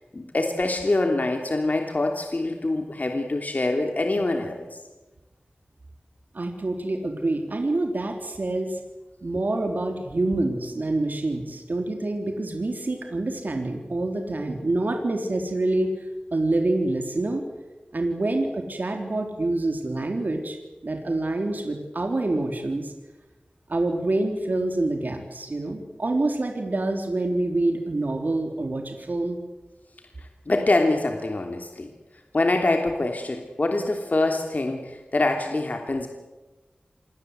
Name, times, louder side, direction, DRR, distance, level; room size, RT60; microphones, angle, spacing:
voice 1, 0.1-4.6 30.5-31.9 32.3-36.1, left 2 dB, 55° left, 3 dB, 3.1 m, -24 dB
voice 2, 6.3-8.8 9.2-17.5 17.9-20.6 20.8-22.9 23.7-29.4, right 2 dB, 65° right, 3 dB, 3.6 m, -26 dB
27.5 x 22.5 x 8.2 m, 1.1 s
wide cardioid pair, 60°, 3 cm